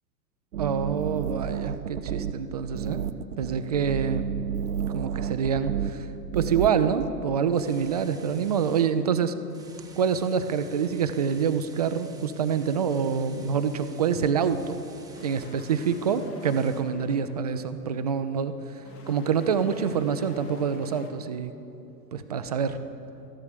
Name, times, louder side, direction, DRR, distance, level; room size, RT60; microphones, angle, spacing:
sound 1, 0.5-7.1, right 8 dB, 65° right, 0.7 m, -31 dB
voice 1, 0.6-3.0 3.4-4.3 4.9-6.1 6.3-9.4 10.0-14.8 15.2-18.6 19.1-21.5 22.1-22.8, right 7 dB, 25° right, 10 dB, 0.4 m, -26 dB
sound 2, 7.5-8.9 9.5-16.8, right 4 dB, 5° right, 1.0 m, -52 dB
sound 3, 15.1-21.1, left 2 dB, 30° left, 1.8 m, -49 dB
14.5 x 11.0 x 6.8 m, 2.7 s
figure-of-eight pair, 100°, 50 cm